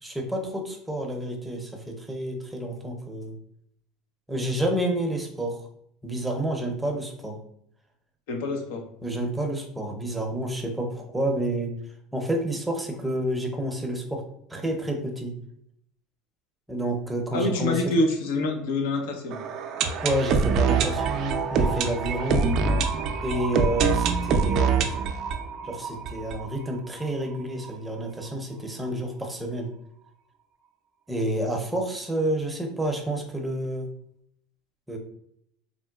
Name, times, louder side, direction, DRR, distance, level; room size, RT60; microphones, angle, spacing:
voice 1, 0.0-3.4 4.3-5.6 6.0-7.4 9.0-11.7 12.1-14.2 14.5-15.3 16.7-17.9 20.0-22.5 23.2-24.9 25.6-29.7 31.1-33.9 34.9-35.0, right 1 dB, 10° right, 2 dB, 0.6 m, -29 dB
voice 2, 8.3-8.8 17.3-19.4, left 2 dB, 80° left, 3 dB, 0.6 m, -26 dB
sound 1, 19.3-27.1 27.3-27.4 27.6-27.7 28.3-28.4, right 5 dB, 50° right, 0.4 m, -25 dB
3.7 x 2.1 x 2.3 m, 0.71 s
supercardioid pair, 110°, 0 cm